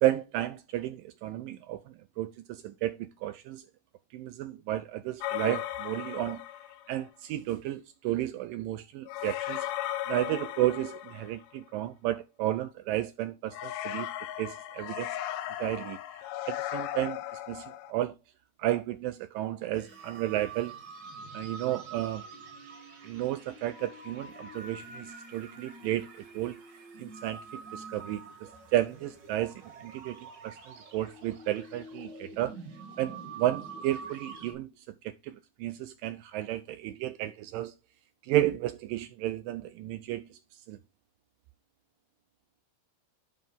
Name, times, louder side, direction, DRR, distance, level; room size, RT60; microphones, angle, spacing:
voice 1, 0.0-3.7 4.1-6.4 6.9-9.7 10.1-14.1 14.4-15.1 15.6-16.0 16.5-17.2 17.5-18.2 18.6-20.8 21.3-22.3 23.0-26.6 27.0-28.2 28.7-32.5 33.0-37.7 38.2-40.8, right 14 dB, 80° right, 2.0 m, -32 dB
sound 1, 5.2-7.0 9.1-11.6 13.5-17.9, left 13 dB, 90° left, 2.6 m, -36 dB
sound 2, 19.7-34.5, right 4 dB, 60° right, 3.9 m, -46 dB
9.2 x 5.6 x 3.4 m
omnidirectional pair, 4.4 m